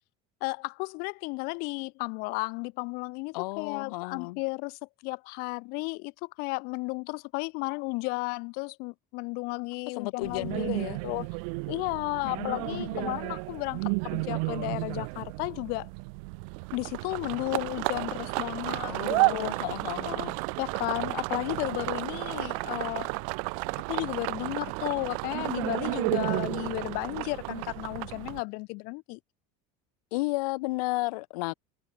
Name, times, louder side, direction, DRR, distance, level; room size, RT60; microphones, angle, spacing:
voice 1, 0.4-11.3 11.7-15.9 16.7-19.5 20.6-23.2 23.9-29.2, left 28 dB, 55° left, 6.6 m, -34 dB
voice 2, 3.3-4.4 10.0-11.0 12.2-13.1 18.9-20.4 30.1-31.5, left 23 dB, 80° left, 5.5 m, -33 dB
sound 1, 10.2-28.4, right 36 dB, 65° right, 6.6 m, -32 dB
cardioid pair, 175°, 19 cm